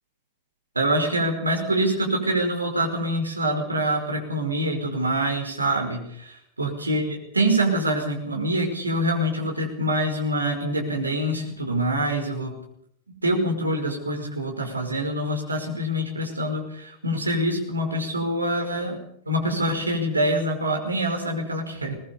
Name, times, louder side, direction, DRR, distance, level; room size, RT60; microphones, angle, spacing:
voice 1, 0.7-12.5 13.2-19.0 19.3-21.9, right 1 dB, 80° right, 2 dB, 5.1 m, -25 dB
21.5 x 19.5 x 6.9 m, 0.71 s
figure-of-eight pair, 90°, 0 cm